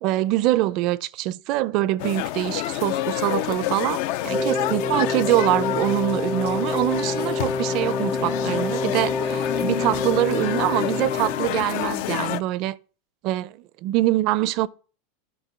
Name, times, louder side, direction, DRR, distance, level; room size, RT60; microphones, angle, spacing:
voice 1, 0.0-12.8 13.2-14.7, right 16 dB, 55° right, 0.5 m, -24 dB
sound 1, 2.0-12.4, left 14 dB, 65° left, 0.4 m, -28 dB
Wind instrument woodwind instrument, 4.3-11.6, left 3 dB, 10° left, 0.5 m, -28 dB
10.0 x 5.7 x 5.7 m
hypercardioid pair, 100°, 0 cm